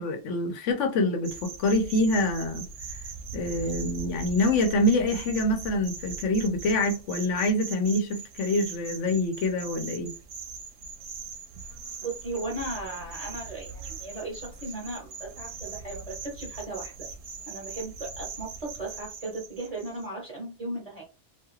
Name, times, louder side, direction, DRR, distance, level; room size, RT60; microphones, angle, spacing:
voice 1, 0.0-2.7 3.3-10.1, left 1 dB, 90° left, 1.0 m, -26 dB
sound 1, 1.2-20.1, right 5 dB, 75° right, 0.9 m, -41 dB
voice 2, 12.0-17.1 17.5-21.0, right 2 dB, 35° right, 0.8 m, -36 dB
2.5 x 2.3 x 3.0 m
omnidirectional pair, 1.2 m